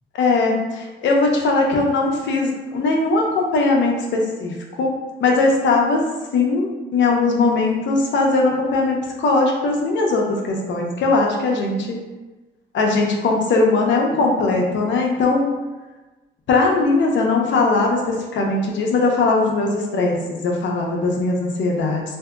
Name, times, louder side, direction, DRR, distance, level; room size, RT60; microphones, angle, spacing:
voice 1, 0.2-4.9 5.2-6.0 6.3-12.0 12.7-15.5 16.5-22.0, left 3 dB, 70° left, 0 dB, 0.7 m, -19 dB
3.5 x 2.6 x 2.4 m, 1.2 s
cardioid pair, 90°, 20 cm